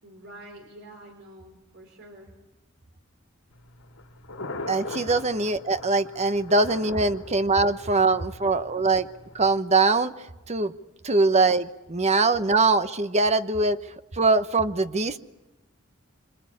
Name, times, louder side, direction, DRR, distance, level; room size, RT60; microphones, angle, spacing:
voice 1, 0.0-2.3, right 1 dB, 60° right, 2 dB, 4.2 m, -47 dB
Thunder, 3.5-9.5, left 2 dB, 90° left, 3.3 m, -40 dB
voice 2, 4.7-9.1 9.3-10.1 10.5-10.7 11.0-13.8 14.1-15.2, right 3 dB, 30° right, 11 dB, 1.0 m, -22 dB
26.5 x 25.5 x 8.6 m, 1.0 s
head